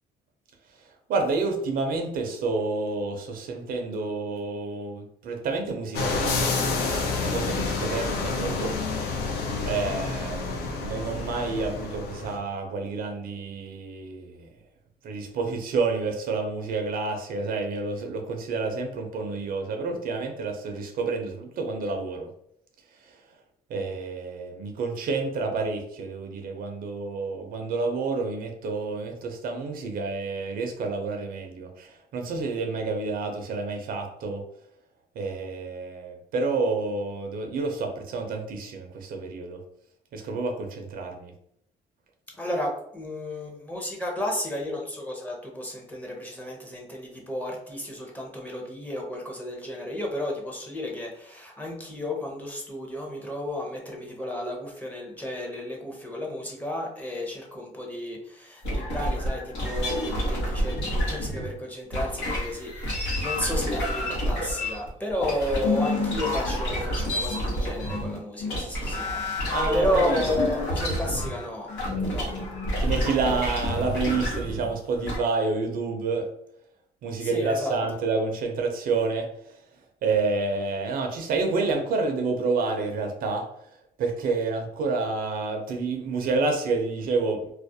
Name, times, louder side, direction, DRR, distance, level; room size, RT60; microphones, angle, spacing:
voice 1, 1.1-8.8 9.7-14.5 15.0-22.3 23.0-23.2 23.7-34.4 35.2-39.6 40.1-41.3 69.3-70.2 72.8-76.3 77.0-79.3 80.0-83.5 84.0-87.5, right 3 dB, 60° right, 4 dB, 0.5 m, -29 dB
sound 1, 5.9-12.4, left 4 dB, 70° left, 0.5 m, -29 dB
voice 2, 42.4-71.7 72.1-72.3 77.2-77.8, left 1 dB, 10° left, -1 dB, 0.6 m, -32 dB
sound 2, 58.6-61.5 61.9-75.2, left 1 dB, 85° left, 1.0 m, -28 dB
2.3 x 2.0 x 2.6 m, 0.71 s
cardioid pair, 110°, 17 cm